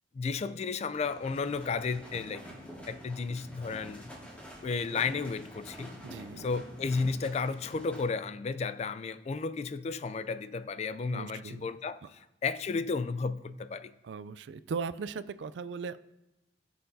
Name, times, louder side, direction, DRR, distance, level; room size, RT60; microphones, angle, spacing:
voice 1, 0.1-2.5 2.9-4.1 4.6-6.0 6.4-13.9, left 4 dB, 35° left, 14 dB, 0.3 m, -33 dB
sound 1, 0.9-8.0, equal, 10° left, 2.1 m, -47 dB
voice 2, 6.0-6.5 11.1-11.7 14.0-16.1, right 5 dB, 80° right, 14 dB, 0.4 m, -38 dB
16.5 x 6.6 x 2.7 m, 0.95 s
head